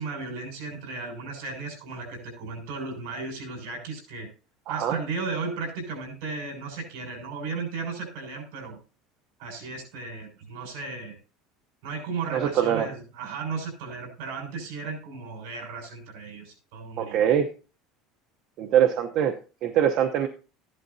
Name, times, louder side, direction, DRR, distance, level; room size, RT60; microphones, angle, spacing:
voice 1, 0.0-4.3 4.7-8.8 9.4-11.2 11.8-17.3, right 4 dB, 70° right, 3 dB, 6.3 m, -35 dB
voice 2, 4.7-5.0 12.3-12.9 17.0-17.5 18.6-19.4 19.6-20.3, right 9 dB, 45° right, 5 dB, 0.8 m, -23 dB
14.5 x 11.0 x 2.7 m, 0.34 s
cardioid pair, 160°, 0 cm